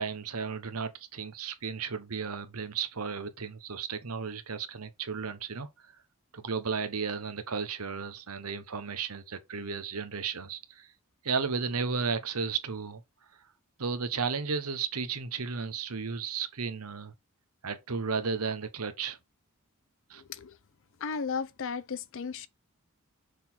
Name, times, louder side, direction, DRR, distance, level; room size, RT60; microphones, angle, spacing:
voice 1, 0.0-5.9 6.3-10.9 11.2-13.0 13.8-17.1 17.6-19.2 20.1-20.2, right 5 dB, 80° right, 1.1 m, -34 dB
voice 2, 21.0-22.5, left 5 dB, 60° left, 0.6 m, -34 dB
6.5 x 3.9 x 4.4 m
head